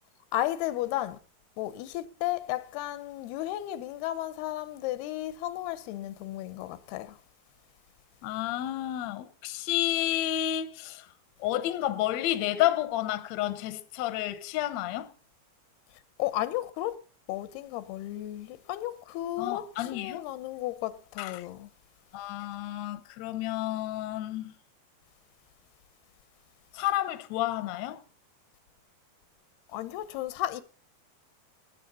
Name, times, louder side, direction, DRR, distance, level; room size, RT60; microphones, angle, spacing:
voice 1, 0.3-1.2 1.6-7.2 16.2-17.0 17.3-21.7 29.7-30.6, left 14 dB, 85° left, 2.8 m, -34 dB
voice 2, 8.2-11.1 11.4-15.1 19.4-20.2 21.2-21.5 22.1-24.5 26.7-28.0, left 13 dB, 70° left, 1.7 m, -30 dB
12.5 x 9.6 x 5.5 m
omnidirectional pair, 4.5 m